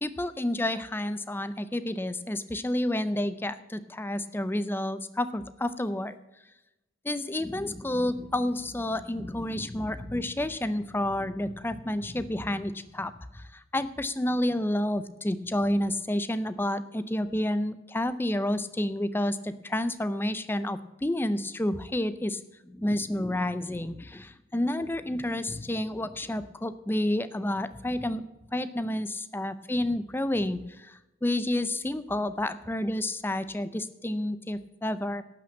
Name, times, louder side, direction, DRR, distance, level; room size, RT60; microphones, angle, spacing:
voice 1, 0.0-6.2 7.0-28.2 28.5-35.2, left 1 dB, 10° left, 13 dB, 0.5 m, -30 dB
12.0 x 6.0 x 8.5 m, 0.96 s
head